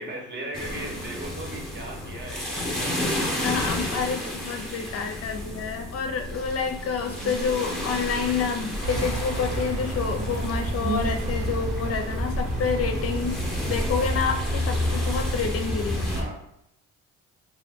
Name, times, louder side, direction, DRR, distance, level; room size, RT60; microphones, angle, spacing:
voice 1, 0.0-3.1 4.0-4.3 5.2-5.4 16.1-16.5, right 1 dB, 35° right, 0 dB, 0.9 m, -38 dB
sound 1, 0.5-16.2, left 1 dB, ahead, 0.8 m, -33 dB
voice 2, 3.4-16.3, left 6 dB, 50° left, 5 dB, 0.5 m, -29 dB
sound 2, 7.0-14.2, right 2 dB, 85° right, 0.7 m, -36 dB
sound 3, 8.8-16.2, equal, 70° right, 1.2 m, -29 dB
2.8 x 2.3 x 3.5 m, 0.80 s
cardioid pair, 90°, 30 cm